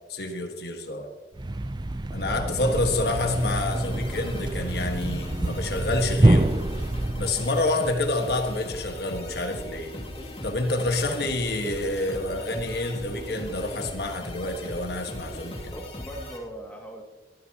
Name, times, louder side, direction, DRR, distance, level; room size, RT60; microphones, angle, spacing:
voice 1, 0.1-1.1 2.1-6.5 7.2-9.9 10.4-15.7, left 2 dB, 60° left, 4 dB, 1.7 m, -28 dB
Thump thud, 1.3-7.5, right 1 dB, 25° right, 0.6 m, -26 dB
voice 2, 2.3-3.1 15.7-17.0, right 1 dB, 10° left, 0 dB, 2.3 m, -40 dB
sound 1, 2.7-16.4, left 1 dB, 35° left, 2.6 m, -38 dB
22.5 x 14.5 x 3.0 m, 1.1 s
head